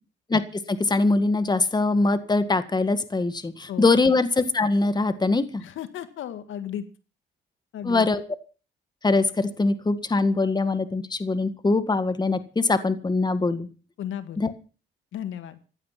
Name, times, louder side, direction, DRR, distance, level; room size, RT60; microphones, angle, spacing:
voice 1, 0.7-5.6 7.8-8.2 9.0-13.7 14.4-14.5, left 3 dB, 20° left, 11 dB, 1.8 m, -22 dB
voice 2, 5.6-6.9 7.7-8.1 14.0-14.5 15.1-15.6, left 10 dB, 80° left, 11 dB, 1.9 m, -34 dB
16.0 x 11.5 x 5.9 m, 0.36 s
cardioid pair, 90°, 20 cm